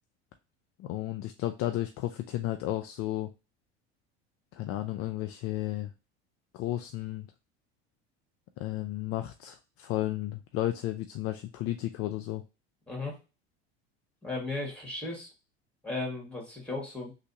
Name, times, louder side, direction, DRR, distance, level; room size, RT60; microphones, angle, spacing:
voice 1, 0.8-3.3 4.5-5.9 6.5-7.3 8.6-12.4, left 14 dB, 45° left, 8 dB, 0.4 m, -33 dB
voice 2, 12.9-13.2 14.2-15.3 15.8-17.1, left 2 dB, 5° left, -1 dB, 2.0 m, -35 dB
3.3 x 3.0 x 2.8 m, 0.30 s
hypercardioid pair, 95°, 33 cm